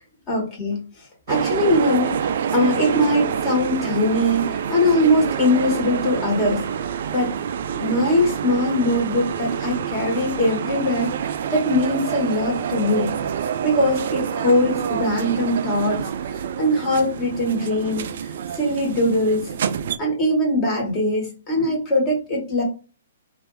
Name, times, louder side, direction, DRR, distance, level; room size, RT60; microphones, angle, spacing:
voice 1, 0.3-0.8 1.3-6.6 6.9-7.3 7.7-13.1 13.6-16.0 16.3-18.1 18.5-19.5 20.0-22.6, left 1 dB, 25° left, -2 dB, 1.9 m, -21 dB
sound 1, 1.3-20.0, right 8 dB, 60° right, 0.3 m, -27 dB
3.1 x 2.5 x 3.2 m, 0.34 s
hypercardioid pair, 130°, 0 cm